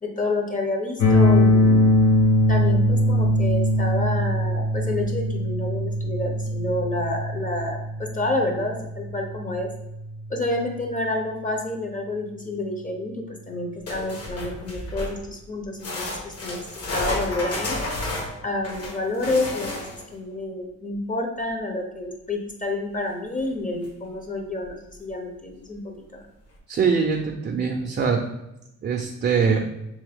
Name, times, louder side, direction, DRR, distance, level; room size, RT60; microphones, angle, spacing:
voice 1, 0.0-1.9 2.5-9.7 10.3-16.6 16.9-17.8 18.4-19.7 20.1-26.2, left 2 dB, 25° left, 2 dB, 0.7 m, -29 dB
sound 1, 1.0-10.9, left 1 dB, 75° left, 1.2 m, -22 dB
sound 2, 13.9-15.2 15.8-20.1 23.4-23.5 23.8-23.9 24.6-24.7, left 2 dB, 50° left, 1.2 m, -31 dB
voice 2, 26.7-28.2 28.8-29.6, right 5 dB, 35° right, 3 dB, 0.5 m, -22 dB
3.4 x 3.1 x 3.5 m, 0.90 s
cardioid pair, 90°, 30 cm